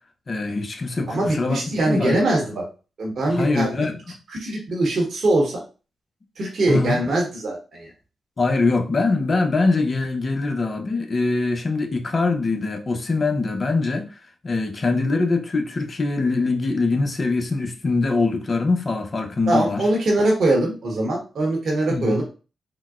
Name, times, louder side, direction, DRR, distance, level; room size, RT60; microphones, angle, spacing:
voice 1, 0.3-1.6 1.9-2.2 3.3-4.0 6.7-7.0 8.4-14.1 14.4-19.8 21.9-22.2, left 3 dB, 45° left, 0.6 m, -23 dB
voice 2, 1.1-2.6 3.0-3.9 4.3-5.6 6.4-7.9 19.5-22.2, right 2 dB, 70° right, 1.0 m, -22 dB
3.8 x 2.1 x 2.4 m
supercardioid pair, 50°, 0 cm